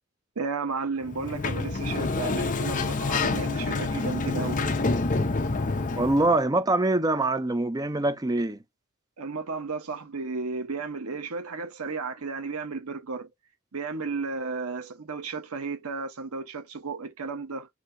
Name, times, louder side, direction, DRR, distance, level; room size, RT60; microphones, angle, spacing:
voice 1, 0.4-4.7 9.2-13.3 13.7-17.7, right 4 dB, 90° right, 1.0 m, -33 dB
Sliding door, 1.0-6.4, left 3 dB, 35° left, 0.7 m, -27 dB
voice 2, 6.0-8.6, right 2 dB, 15° right, 0.5 m, -24 dB
6.2 x 2.8 x 2.6 m
head